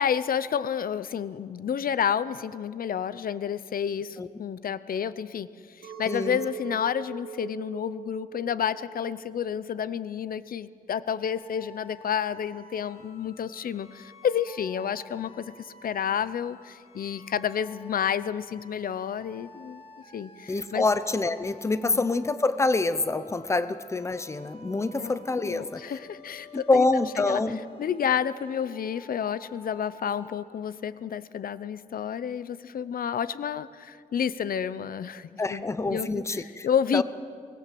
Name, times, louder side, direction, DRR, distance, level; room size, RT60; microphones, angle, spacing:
voice 1, 0.0-19.8 20.1-20.9 21.8-22.1 25.0-26.9 27.2-27.4 27.8-35.6 35.9-37.0, left 8 dB, 80° left, 16 dB, 0.7 m, -30 dB
Chink clink, 5.8-11.3, right 8 dB, 75° right, 2.6 m, -42 dB
voice 2, 6.1-6.4 20.5-25.8 26.5-27.6 35.4-36.7 36.9-37.0, left 3 dB, 20° left, 12 dB, 0.7 m, -26 dB
sound 1, 11.3-30.3, left 2 dB, 40° left, 3.1 m, -51 dB
24.0 x 19.0 x 7.6 m, 2.2 s
wide cardioid pair, 180°, 15 cm